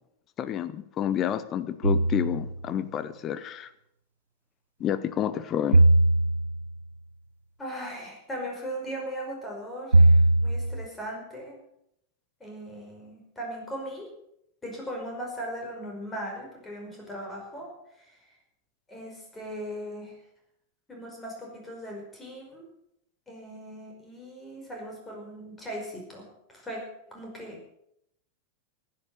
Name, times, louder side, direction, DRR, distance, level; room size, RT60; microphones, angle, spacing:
voice 1, 0.4-3.7 4.8-5.8, left 10 dB, 30° left, 13 dB, 0.9 m, -29 dB
sound 1, 1.8-2.6 5.7-6.8 9.9-10.9, right 2 dB, 75° right, 0.5 m, -20 dB
voice 2, 7.6-11.6 12.4-14.1 14.6-17.7 18.0-18.3 18.9-20.2 20.9-22.7 23.3-26.8 27.1-27.7, equal, 15° left, 0 dB, 5.3 m, -38 dB
15.0 x 9.7 x 6.8 m, 0.77 s
figure-of-eight pair, 90°, 0 cm